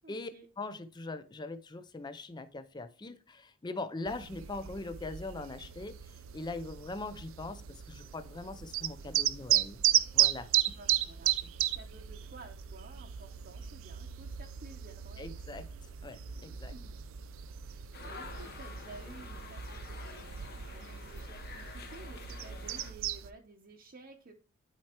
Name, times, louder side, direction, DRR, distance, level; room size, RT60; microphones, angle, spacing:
voice 1, 0.0-0.5 10.8-11.3 11.7-15.4 16.7-17.0 17.6-24.3, right 2 dB, 40° right, 0.8 m, -53 dB
voice 2, 0.6-10.5 15.2-15.7 16.0-16.7, left 2 dB, 20° left, 0.4 m, -41 dB
sound 1, 4.1-23.3, right 13 dB, 65° right, 0.4 m, -35 dB
sound 2, 17.9-22.9, left 4 dB, 45° left, 1.1 m, -48 dB
11.5 x 4.5 x 2.9 m
head